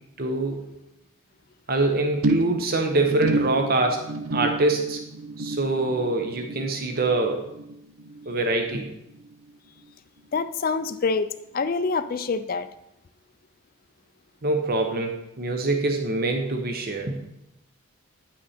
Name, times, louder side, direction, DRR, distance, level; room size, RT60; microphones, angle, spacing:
voice 1, 0.2-0.6 1.7-5.0 5.4-7.4 8.3-8.9 14.4-17.2, right 2 dB, 40° right, 4 dB, 0.8 m, -24 dB
sound 1, 2.2-8.8 9.1-9.5 9.8-9.9, right 2 dB, 75° right, 0.6 m, -31 dB
voice 2, 10.3-12.7, left 4 dB, 40° left, 11 dB, 0.4 m, -26 dB
9.5 x 6.0 x 4.2 m, 0.84 s
head